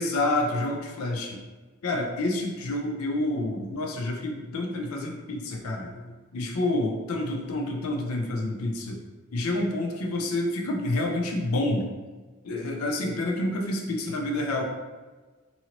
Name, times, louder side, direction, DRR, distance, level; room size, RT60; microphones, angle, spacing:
voice 1, 0.0-1.4 1.8-6.1 6.3-9.0 9.3-11.9 12.4-14.6, left 2 dB, 85° left, 1 dB, 0.5 m, -28 dB
2.8 x 2.7 x 2.8 m, 1.3 s
head